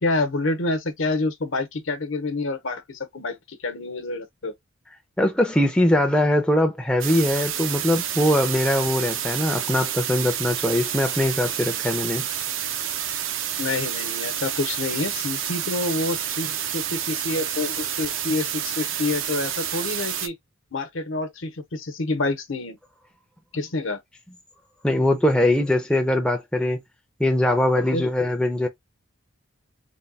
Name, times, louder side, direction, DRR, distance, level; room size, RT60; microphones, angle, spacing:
voice 1, 0.0-4.5 13.6-20.3 20.7-22.8 23.5-24.0 27.9-28.1, left 2 dB, 65° left, 0.9 m, -27 dB
voice 2, 5.2-12.2 24.8-26.8 27.2-28.7, left 1 dB, 5° left, 0.5 m, -21 dB
sound 1, 7.0-20.3, right 10 dB, 65° right, 0.6 m, -29 dB
3.4 x 2.2 x 4.0 m
head